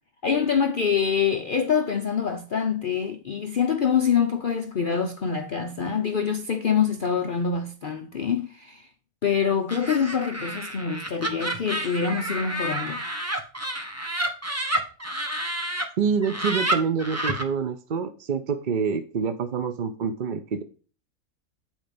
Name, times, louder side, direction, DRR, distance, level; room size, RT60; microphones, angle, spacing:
voice 1, 0.2-8.9 9.2-13.1, left 7 dB, 50° left, 0.7 m, -25 dB
Laughter, 9.7-15.8 16.2-17.4, right 1 dB, 10° right, 1.1 m, -29 dB
voice 2, 16.0-20.6, right 6 dB, 50° right, 0.6 m, -26 dB
8.9 x 4.5 x 5.1 m
omnidirectional pair, 1.5 m